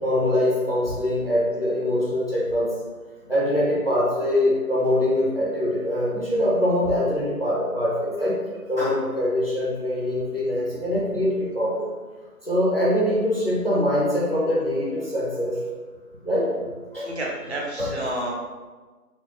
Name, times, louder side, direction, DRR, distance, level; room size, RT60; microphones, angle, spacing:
voice 1, 0.0-2.7 3.3-8.4 8.7-11.9 12.4-15.6 16.2-16.5 16.9-17.2 17.8-18.1, left 1 dB, 40° left, -6 dB, 0.6 m, -23 dB
voice 2, 17.0-18.3, right 1 dB, 45° right, -3 dB, 0.5 m, -30 dB
4.2 x 2.1 x 2.8 m, 1.3 s
figure-of-eight pair, 170°, 47 cm